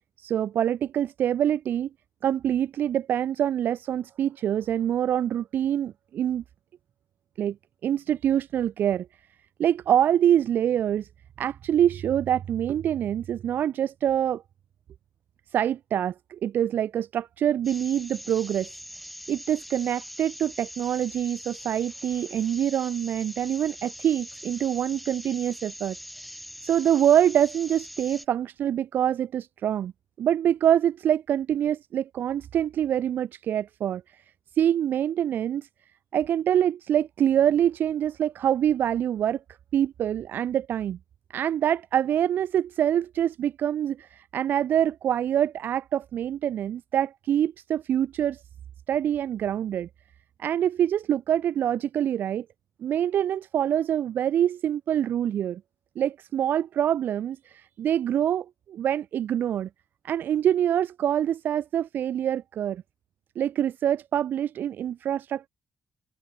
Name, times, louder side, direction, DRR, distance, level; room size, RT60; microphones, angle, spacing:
voice 1, 0.2-1.9 2.2-6.4 7.4-7.6 7.8-9.1 9.6-11.1 11.4-14.4 15.5-18.7 19.3-26.0 26.6-29.9 30.2-34.2 34.6-35.7 36.1-39.4 39.7-41.0 41.3-48.4 48.9-49.9 50.4-52.5 52.8-55.6 56.0-59.7 60.0-62.8 63.4-65.5, right 10 dB, 70° right, 0.8 m, -25 dB
sound 1, 17.6-28.3, equal, ahead, 2.0 m, -42 dB
cardioid pair, 80°, 3 cm